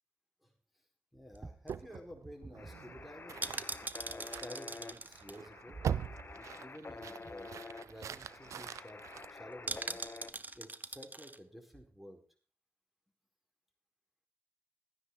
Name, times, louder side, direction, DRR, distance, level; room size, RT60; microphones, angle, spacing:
voice 1, 1.1-3.5 3.7-5.9 6.3-7.5 7.8-9.0 9.3-12.2, equal, ahead, 4 dB, 4.6 m, -52 dB
sound 1, 1.2-6.6 6.9-7.0 7.2-7.5 7.9-8.0 8.2-8.6 9.7-11.4 11.7-11.8, right 2 dB, 35° right, 0.9 m, -43 dB
sound 2, 1.7-10.1, right 8 dB, 85° right, 0.5 m, -43 dB
sound 3, 2.6-10.3, left 3 dB, 45° left, 1.2 m, -49 dB
14.0 x 9.9 x 4.7 m, 0.40 s
cardioid pair, 40°, 5 cm